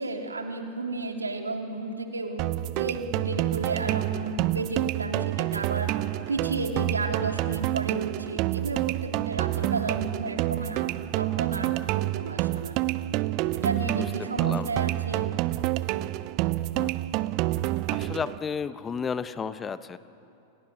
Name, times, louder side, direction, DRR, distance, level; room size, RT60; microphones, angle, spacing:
voice 1, 0.0-2.5 2.8-5.9 6.3-10.9 11.2-12.7 13.5-15.3, right 3 dB, 80° right, 3 dB, 3.0 m, -33 dB
sound 1, 2.4-18.4, right 16 dB, 45° right, 0.7 m, -28 dB
voice 2, 13.9-14.7 16.7-16.9 17.9-20.0, left 6 dB, 20° left, 14 dB, 0.9 m, -33 dB
29.5 x 29.0 x 6.2 m, 2.7 s
figure-of-eight pair, 95°, 0 cm